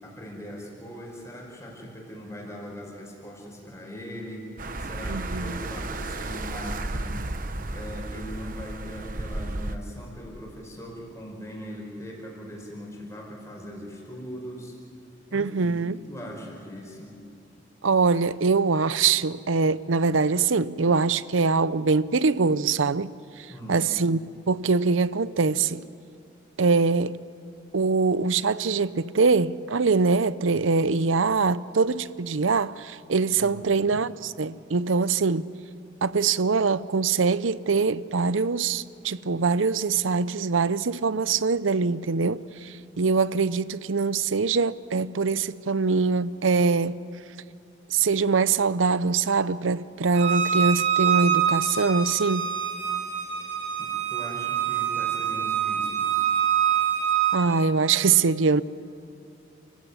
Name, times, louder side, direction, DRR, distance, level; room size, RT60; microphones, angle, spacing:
voice 1, 0.0-4.5 4.8-7.1 7.7-14.8 15.3-17.2 23.5-23.9 33.4-34.0 53.8-56.3, equal, 15° left, 5.2 m, -40 dB
sound 1, 4.6-9.8, right 2 dB, 45° right, 1.0 m, -33 dB
voice 2, 5.1-5.7 15.3-16.0 17.8-24.2 24.5-25.8 26.6-27.2 27.7-35.5 36.0-47.0 47.9-52.5 57.3-58.6, right 4 dB, 90° right, 0.7 m, -23 dB
Bowed string instrument, 50.2-57.4, right 9 dB, 65° right, 3.5 m, -25 dB
29.0 x 15.5 x 9.7 m
head